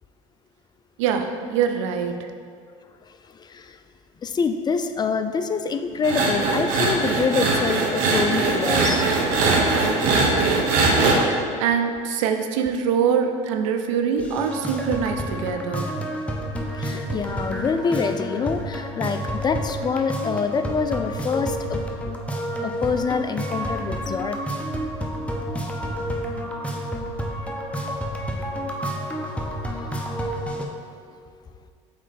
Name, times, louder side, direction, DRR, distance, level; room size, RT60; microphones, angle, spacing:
voice 1, 1.0-2.3 11.6-15.9, right 7 dB, 85° right, 6 dB, 0.5 m, -24 dB
voice 2, 3.1-3.8 4.2-9.1 16.7-22.1 22.5-24.4 28.4-30.7 31.0-31.2, left 5 dB, 25° left, 8 dB, 0.4 m, -27 dB
sound 1, 6.0-11.2, right 3 dB, 65° right, 1.0 m, -21 dB
sound 2, 14.2-30.6, equal, 10° left, 0.7 m, -30 dB
7.3 x 3.2 x 4.0 m, 2.1 s
supercardioid pair, 85°, 16 cm